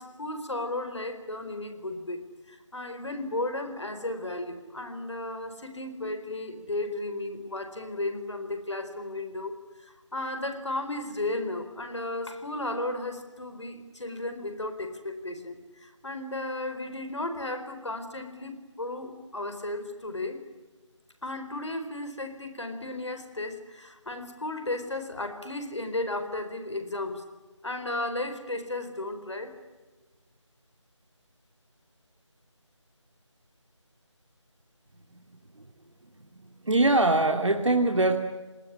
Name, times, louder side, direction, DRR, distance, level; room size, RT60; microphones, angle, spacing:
voice 1, 0.0-20.4 21.2-27.2 27.6-29.5, left 2 dB, 65° left, 8 dB, 4.4 m, -34 dB
voice 2, 36.3-38.1, right 2 dB, 70° right, 3 dB, 2.4 m, -23 dB
28.5 x 19.5 x 9.6 m, 1.3 s
figure-of-eight pair, 170°, 16 cm